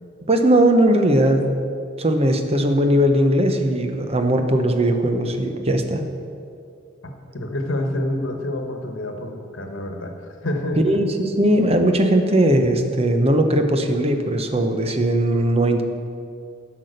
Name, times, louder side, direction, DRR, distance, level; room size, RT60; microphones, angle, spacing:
voice 1, 0.3-1.4 2.0-6.0 10.8-15.8, right 1 dB, 30° right, 6 dB, 0.8 m, -19 dB
voice 2, 7.3-11.0, left 1 dB, 80° left, 4 dB, 1.2 m, -27 dB
10.5 x 6.1 x 6.5 m, 2.4 s
head